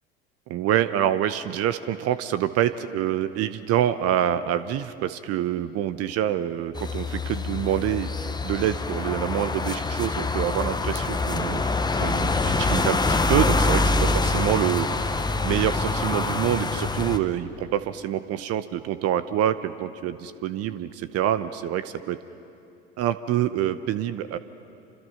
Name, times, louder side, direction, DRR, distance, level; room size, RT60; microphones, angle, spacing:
voice 1, 0.5-8.1 8.4-11.6 12.0-22.2 23.0-24.4, right 11 dB, 50° right, 12 dB, 1.0 m, -26 dB
sound 1, 6.8-17.2, left 3 dB, 15° left, 1.2 m, -25 dB
28.0 x 26.5 x 5.8 m, 2.8 s
hypercardioid pair, 70°, 32 cm